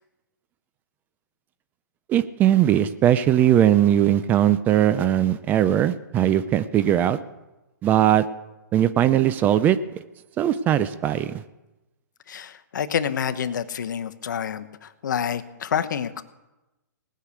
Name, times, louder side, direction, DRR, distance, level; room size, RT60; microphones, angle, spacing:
voice 1, 2.1-7.2 7.8-8.2 8.7-9.8 10.4-11.4, right 11 dB, 15° right, 14 dB, 0.4 m, -19 dB
voice 2, 12.3-16.2, left 8 dB, 65° left, 11 dB, 1.0 m, -28 dB
18.5 x 6.6 x 8.3 m, 1.0 s
hypercardioid pair, 150°, 11 cm